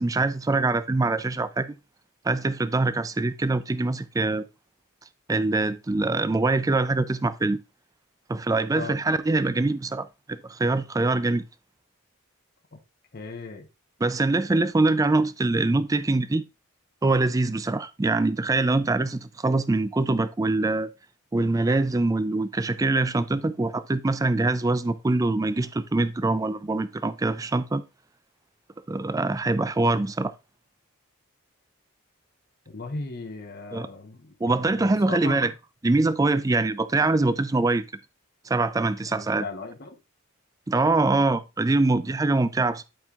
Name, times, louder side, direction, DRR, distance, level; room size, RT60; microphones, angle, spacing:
voice 1, 0.0-1.7 2.2-4.4 5.3-7.6 8.3-11.4 14.0-16.4 17.0-20.9 21.3-27.8 28.9-30.3 33.7-33.9 34.4-35.5 35.8-37.8 38.5-39.4 40.7-42.8, right 2 dB, 15° right, 0.3 m, -24 dB
voice 2, 13.1-13.7 32.7-35.5 39.1-40.0, left 3 dB, 45° left, 0.9 m, -37 dB
11.5 x 4.5 x 2.4 m
head